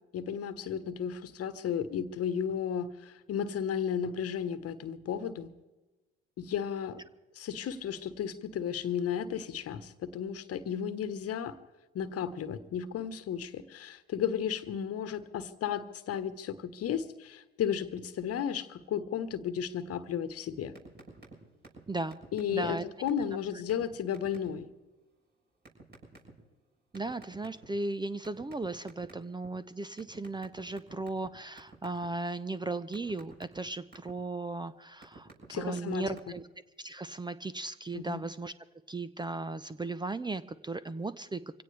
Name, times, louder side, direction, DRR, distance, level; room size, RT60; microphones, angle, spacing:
voice 1, 0.1-5.5 6.4-7.0 7.3-11.6 11.9-20.7 22.3-24.7 35.5-36.1 37.9-38.2, left 8 dB, 50° left, 13 dB, 1.3 m, -34 dB
sound 1, 20.7-21.3 21.6-21.8 22.1-22.7 23.1-23.2 23.7-23.8 24.1-24.5 25.6-26.3 26.9-27.8 28.2-29.5 30.0-31.3 31.6-32.0 32.4-34.1 34.7-35.5 35.7-36.2, right 2 dB, 35° right, 7.1 m, -50 dB
voice 2, 21.9-22.2 22.5-22.8 26.9-36.4 36.8-38.5 38.9-41.6, right 2 dB, 15° right, 15 dB, 0.7 m, -36 dB
24.5 x 17.0 x 3.4 m, 1.1 s
hypercardioid pair, 65°, 30 cm